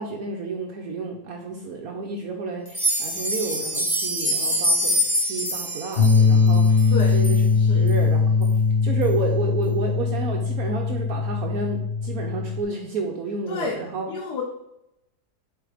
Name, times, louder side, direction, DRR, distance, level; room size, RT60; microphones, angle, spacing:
voice 1, 0.0-7.4 7.7-8.5 8.8-14.1, right 3 dB, 65° right, 2 dB, 1.3 m, -31 dB
sound 1, 2.7-7.4 7.9-8.0 8.4-8.5 9.0-9.1, equal, 5° left, 1.7 m, -25 dB
sound 2, 6.0-12.6, left 4 dB, 45° left, 1.2 m, -20 dB
voice 2, 7.6-7.9 13.5-13.8 14.1-14.4, left 4 dB, 75° left, -1 dB, 1.5 m, -30 dB
7.5 x 3.9 x 5.0 m, 0.86 s
omnidirectional pair, 1.8 m